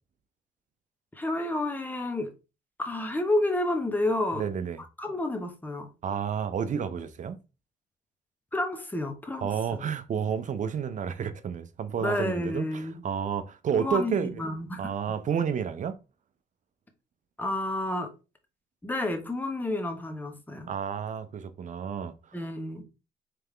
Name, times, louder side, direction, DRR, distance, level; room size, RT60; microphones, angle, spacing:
voice 1, 1.1-2.3 2.8-4.4 5.0-5.9 8.5-9.8 12.0-13.0 13.7-14.8 17.4-18.1 18.8-20.7 22.3-22.8, left 1 dB, 10° left, 1.0 m, -30 dB
voice 2, 4.3-4.8 6.0-7.4 9.4-14.4 14.8-16.0 20.7-22.1, right 7 dB, 45° right, 0.6 m, -30 dB
3.4 x 3.4 x 3.3 m
supercardioid pair, 70°, 17 cm